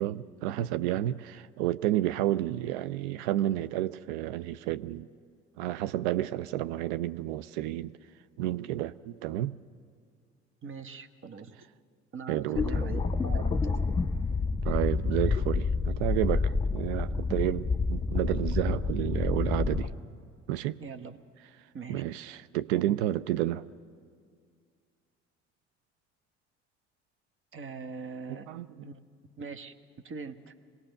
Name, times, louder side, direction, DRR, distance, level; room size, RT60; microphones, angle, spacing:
voice 1, 0.0-5.1 5.6-7.9 8.4-9.5 12.3-12.7 14.6-19.9 20.5-20.8 21.9-23.6 28.3-28.7, right 14 dB, 70° right, 14 dB, 0.5 m, -30 dB
voice 2, 10.6-11.6 12.1-13.8 20.8-21.2 21.7-22.0 27.5-28.5 28.8-29.0 29.4-29.7 30.0-30.5, right 5 dB, 35° right, 10 dB, 1.1 m, -41 dB
sound 1, 12.6-19.9, left 4 dB, 15° left, 1.8 m, -28 dB
25.0 x 18.5 x 6.6 m, 2.1 s
hypercardioid pair, 60°, 34 cm